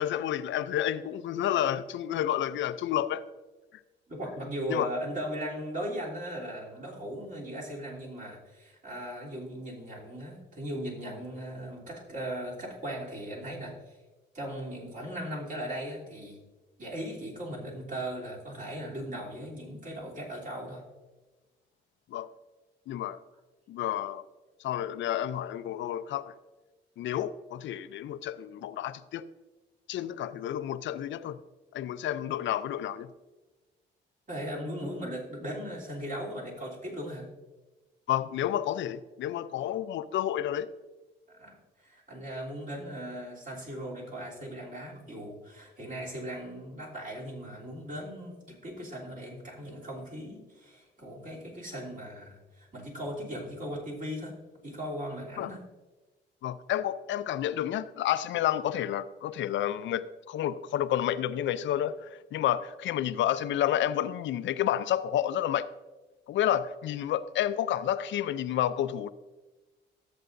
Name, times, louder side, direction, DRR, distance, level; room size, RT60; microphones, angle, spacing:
voice 1, 0.0-3.3 4.7-4.9 22.1-22.3 22.9-23.2 23.7-24.2 24.6-26.3 27.0-29.3 29.9-31.4 31.7-33.1 38.1-40.7 55.4-55.5 56.4-65.7 66.3-69.1, left 11 dB, 70° left, 14 dB, 0.5 m, -30 dB
voice 2, 4.1-14.0 14.3-16.4 16.8-20.8 34.3-37.2 41.3-54.3 54.6-55.6, equal, 40° right, -4 dB, 3.1 m, -38 dB
13.5 x 7.6 x 2.6 m, 1.2 s
cardioid pair, 90°, 20 cm